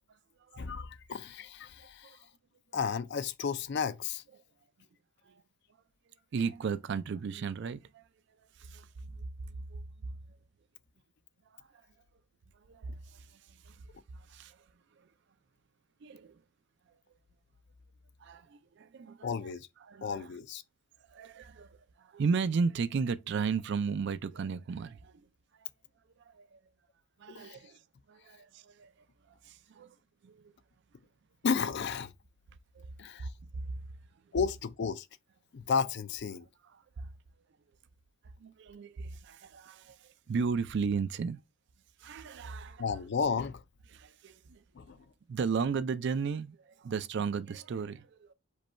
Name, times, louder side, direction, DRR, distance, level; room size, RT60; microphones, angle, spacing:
voice 1, 0.6-2.2 2.7-4.2 19.2-19.7 20.0-20.6 27.3-27.6 31.4-32.1 33.0-33.3 34.3-35.1 35.5-36.5 42.8-43.6 44.7-45.0, left 6 dB, 55° left, 0.4 m, -33 dB
voice 2, 6.3-8.0 8.6-10.1 11.5-11.7 12.6-13.8 14.1-14.6 16.0-16.4 18.2-19.3 19.9-20.3 21.1-25.3 26.3-26.6 27.2-27.8 28.1-28.9 29.4-30.0 30.2-30.5 32.7-32.9 36.7-37.1 38.4-41.4 42.0-43.0 43.9-44.6 45.3-48.3, right 5 dB, 55° right, 0.4 m, -35 dB
5.2 x 2.3 x 4.2 m
head